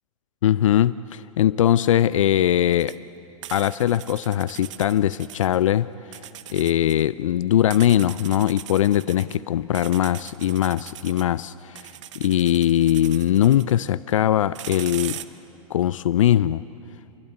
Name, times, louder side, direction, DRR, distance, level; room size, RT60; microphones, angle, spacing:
voice 1, 0.4-3.0 3.5-5.9 6.5-15.2 15.7-16.6, left 11 dB, 65° left, 17 dB, 0.5 m, -21 dB
sound 1, 2.7-3.0 3.4-5.6 6.1-7.1 7.7-9.4 9.7-11.2 11.7-13.9 14.4-15.2, right 12 dB, 60° right, 1.1 m, -40 dB
28.0 x 22.0 x 9.7 m, 2.9 s
figure-of-eight pair, 100°, 18 cm